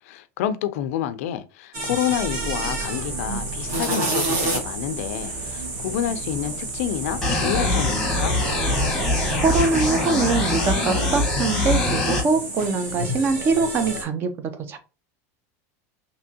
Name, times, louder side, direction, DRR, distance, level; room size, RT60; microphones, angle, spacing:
voice 1, 0.0-8.4, left 10 dB, 75° left, 0.4 m, -28 dB
sound 1, 1.7-14.0, right 2 dB, 45° right, 1.6 m, -30 dB
sound 2, 2.1-9.8, right 4 dB, 80° right, 1.3 m, -37 dB
sound 3, 7.2-12.2, left 2 dB, 5° left, 1.0 m, -23 dB
voice 2, 9.4-14.8, right 4 dB, 25° right, 0.5 m, -23 dB
3.4 x 2.9 x 2.7 m
supercardioid pair, 160°, 8 cm